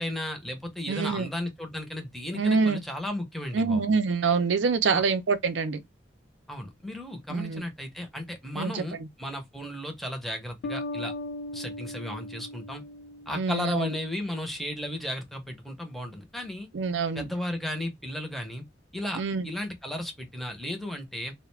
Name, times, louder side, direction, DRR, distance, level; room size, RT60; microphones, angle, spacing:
voice 1, 0.0-3.9 4.9-5.0 6.5-11.1 11.5-12.8 13.3-16.7 17.1-18.6 18.9-21.3, left 1 dB, ahead, 0.6 m, -34 dB
voice 2, 0.9-1.3 2.3-2.8 3.5-5.8 7.3-7.6 8.6-9.1 13.3-13.9 16.7-17.3 19.2-19.5, right 4 dB, 80° right, 0.5 m, -26 dB
sound 1, 10.6-14.0, left 1 dB, 70° left, 0.3 m, -38 dB
2.3 x 2.1 x 3.1 m
head